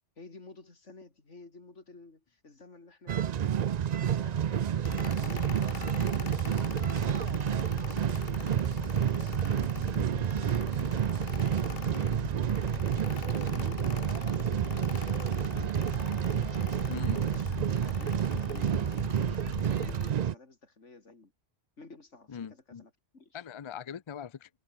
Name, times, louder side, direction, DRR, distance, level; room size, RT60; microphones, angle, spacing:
voice 1, 0.2-3.4 3.9-7.9 8.4-11.0 11.5-15.9 16.3-17.0 17.3-17.5 17.8-21.3 21.8-23.4, left 3 dB, 85° left, 3.6 m, -53 dB
sound 1, 3.1-20.3, right 9 dB, 55° right, 0.5 m, -30 dB
Mechanical fan, 4.8-20.1, left 8 dB, 60° left, 1.0 m, -41 dB
voice 2, 16.9-17.3 22.3-22.8 23.3-24.5, left 7 dB, 40° left, 0.4 m, -41 dB
omnidirectional pair, 1.2 m